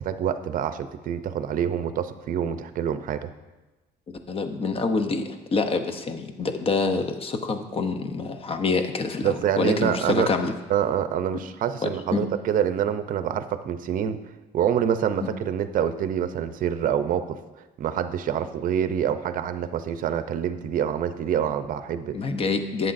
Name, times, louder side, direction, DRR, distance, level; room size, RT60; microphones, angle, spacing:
voice 1, 0.0-3.3 9.2-10.3 10.7-14.2 14.5-17.4 17.8-22.2, right 9 dB, 55° right, 11 dB, 0.6 m, -26 dB
voice 2, 4.1-10.5 11.8-12.3 22.1-22.9, left 4 dB, 35° left, 8 dB, 0.7 m, -26 dB
11.0 x 7.9 x 2.6 m, 1.1 s
cardioid pair, 110°, 17 cm